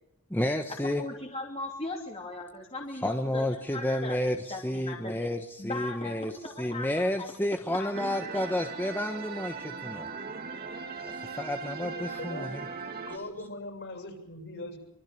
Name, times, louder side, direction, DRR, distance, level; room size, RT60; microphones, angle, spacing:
voice 1, 0.3-1.0 3.0-10.1 11.1-12.7, left 1 dB, 10° left, 5 dB, 1.2 m, -31 dB
voice 2, 1.0-4.2 4.5-5.1 5.6-7.3 7.7-8.1 8.3-8.5, left 2 dB, 25° left, 1 dB, 2.8 m, -38 dB
sound 1, 7.9-13.2, right 5 dB, 45° right, 2.7 m, -39 dB
voice 3, 11.8-12.7 13.1-14.8, left 2 dB, 50° left, 5 dB, 7.3 m, -41 dB
25.5 x 24.0 x 7.0 m, 0.77 s
head